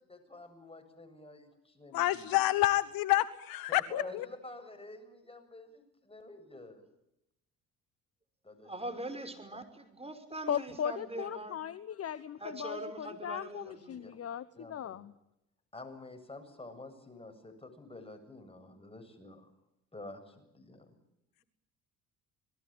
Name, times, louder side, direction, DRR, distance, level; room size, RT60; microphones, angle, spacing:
voice 1, 0.1-2.4 3.7-6.9 8.4-8.7 14.0-14.2 14.5-15.0 15.7-19.5 19.9-20.9, left 2 dB, 15° left, 6 dB, 7.8 m, -49 dB
voice 2, 1.9-4.3, left 16 dB, 60° left, 17 dB, 1.2 m, -28 dB
voice 3, 8.6-11.6 12.4-14.0, right 1 dB, 15° right, 7 dB, 5.5 m, -42 dB
voice 4, 10.5-15.1, left 9 dB, 35° left, 17 dB, 1.0 m, -38 dB
26.5 x 20.0 x 9.1 m, 0.83 s
hypercardioid pair, 55°, 39 cm